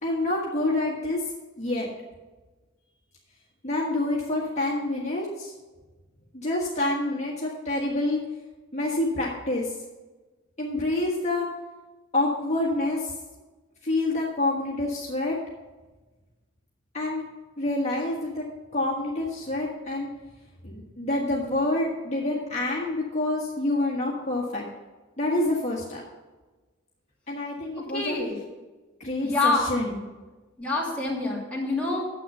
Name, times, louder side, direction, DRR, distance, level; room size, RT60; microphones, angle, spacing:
voice 1, 0.0-1.2 1.6-1.9 3.6-5.5 6.3-8.2 8.7-9.7 10.6-11.5 12.1-13.1 13.8-15.4 16.9-17.2 17.6-18.4 18.7-20.1 20.6-24.6 25.2-26.0 27.3-28.2 29.0-30.0, left 2 dB, 35° left, -4 dB, 1.5 m, -27 dB
voice 2, 27.8-28.4 29.2-29.7 30.6-32.0, left 3 dB, 5° left, -5 dB, 2.6 m, -26 dB
9.8 x 7.8 x 5.5 m, 1.2 s
head